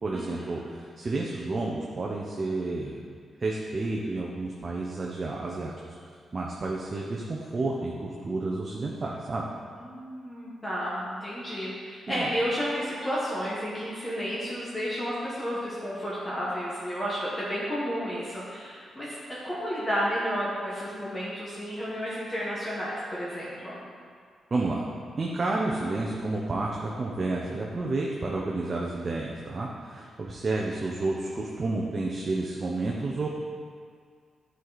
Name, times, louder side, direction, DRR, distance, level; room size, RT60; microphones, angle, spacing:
voice 1, 0.0-3.0 3.4-6.0 6.3-9.5 12.1-12.3 24.5-24.9 25.2-33.3, right 2 dB, 35° right, -2 dB, 0.7 m, -30 dB
voice 2, 9.8-23.8, equal, 15° left, -8 dB, 1.4 m, -32 dB
9.2 x 4.6 x 4.1 m, 2.1 s
cardioid pair, 105°, 0 cm